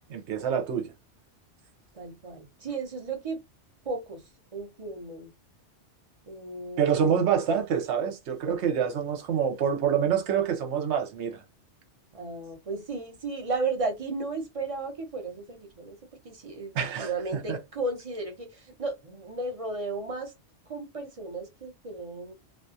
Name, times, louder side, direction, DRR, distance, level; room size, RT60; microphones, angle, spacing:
voice 1, 0.1-0.9 6.8-11.4 16.7-17.6, right 7 dB, 75° right, 1.0 m, -26 dB
voice 2, 1.9-3.4 3.8-4.2 4.5-5.3 6.2-7.2 8.5-8.6 12.1-16.0 16.2-16.7 17.0-20.3 20.7-22.3, right 3 dB, 35° right, 0.7 m, -34 dB
2.5 x 2.3 x 2.6 m
omnidirectional pair, 1.2 m